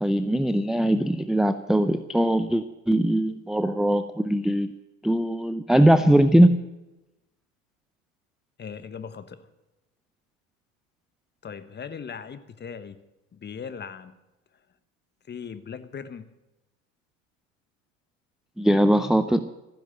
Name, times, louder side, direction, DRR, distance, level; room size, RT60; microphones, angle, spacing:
voice 1, 0.0-4.7 5.0-6.6 18.6-19.5, right 1 dB, ahead, 11 dB, 0.6 m, -21 dB
voice 2, 8.6-9.5 11.4-13.0 13.3-14.1 15.3-16.2, left 6 dB, 25° left, 13 dB, 1.2 m, -38 dB
14.5 x 10.5 x 8.0 m, 0.98 s
hypercardioid pair, 80°, 41 cm